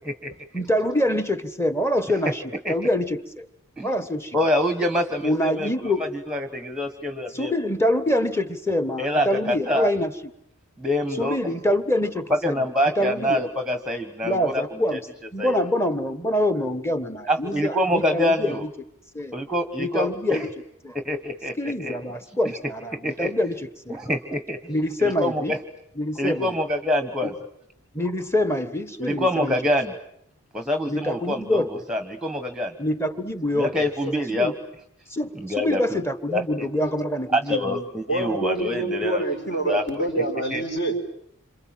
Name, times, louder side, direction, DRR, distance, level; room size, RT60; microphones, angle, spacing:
voice 1, 0.5-2.4 2.7-3.5 3.8-4.4 5.2-6.0 7.3-10.1 11.2-12.6 13.0-13.5 14.2-15.0 15.3-18.7 19.1-20.5 20.8-21.0 21.6-24.0 24.7-25.5 26.0-26.6 27.2-27.3 27.9-29.6 30.9-31.8 32.8-34.5 35.1-37.8 38.3-38.4, left 1 dB, 10° left, 11 dB, 1.5 m, -25 dB
voice 2, 4.3-5.9 6.3-7.5 9.0-9.9 10.8-11.4 12.3-14.6 14.9-15.0 15.4-15.5 17.3-18.6 19.3-20.5 20.9-22.0 23.0-23.3 23.9-24.6 25.0-25.6 26.2-27.3 29.0-29.9 30.5-32.7 33.6-34.5 35.4-35.8 36.3-36.7 37.3-39.2 39.7-39.8 40.5-40.6, left 1 dB, 5° right, 7 dB, 1.3 m, -25 dB
voice 3, 38.1-41.0, right 2 dB, 50° left, 4 dB, 5.1 m, -26 dB
28.0 x 27.0 x 7.6 m, 0.74 s
head